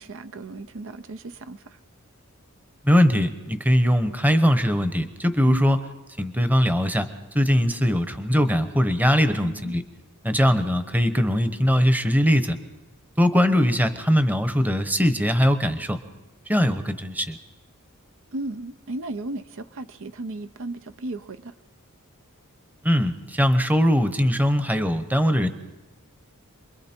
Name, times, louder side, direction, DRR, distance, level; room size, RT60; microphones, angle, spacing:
voice 1, 0.0-1.8 5.5-5.8 9.3-9.8 18.3-21.5, right 2 dB, 65° right, 11 dB, 0.7 m, -35 dB
voice 2, 2.8-5.8 6.2-7.1 7.3-9.8 10.2-12.6 13.2-16.0 16.5-17.4 22.8-25.5, equal, 10° right, 10 dB, 1.0 m, -21 dB
28.5 x 22.5 x 4.5 m, 1.1 s
head